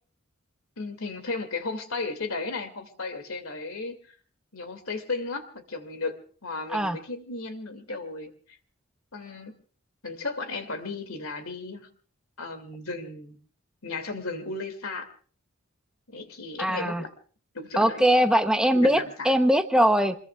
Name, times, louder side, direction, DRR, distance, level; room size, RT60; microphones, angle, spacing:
voice 1, 0.8-4.2 4.5-8.6 9.1-9.5 10.0-11.9 12.4-13.4 13.8-15.1 16.1-17.1 17.5-18.0 18.7-19.3, left 3 dB, 80° left, 8 dB, 2.5 m, -35 dB
voice 2, 16.6-17.0 17.8-20.2, equal, 5° right, 7 dB, 0.8 m, -21 dB
27.0 x 21.5 x 2.4 m, 0.41 s
head